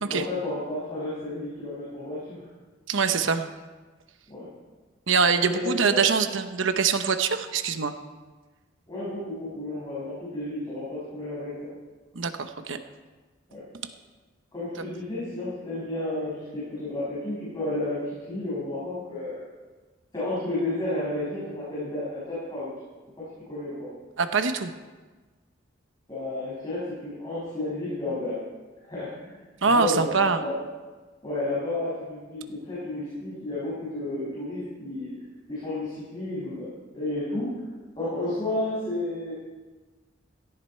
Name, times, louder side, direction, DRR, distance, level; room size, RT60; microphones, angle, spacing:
voice 1, 0.1-2.4 4.3-4.5 5.5-6.0 8.9-11.7 13.5-13.6 14.5-19.4 20.1-22.7 23.2-23.9 26.1-28.4 28.9-29.4 29.7-30.5 31.2-35.1 35.5-36.7 36.9-37.5 37.9-39.3, left 2 dB, 25° left, -9 dB, 6.1 m, -32 dB
voice 2, 2.9-3.5 5.1-7.9 12.1-12.8 24.2-24.7 29.6-30.4, right 5 dB, 85° right, 8 dB, 1.0 m, -24 dB
17.0 x 15.0 x 4.5 m, 1.3 s
head